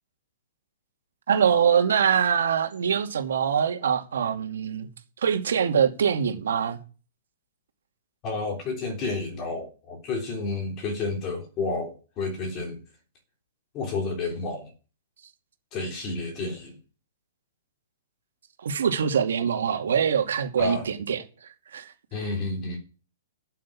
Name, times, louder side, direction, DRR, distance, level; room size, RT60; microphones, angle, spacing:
voice 1, 1.3-4.9 5.2-6.8 18.6-21.9, right 7 dB, 75° right, 2.4 m, -24 dB
voice 2, 8.2-12.8 13.7-14.7 15.7-16.8 20.6-20.9 22.1-22.8, left 3 dB, 20° left, 3.3 m, -30 dB
8.4 x 8.3 x 8.6 m
hypercardioid pair, 170°, 0 cm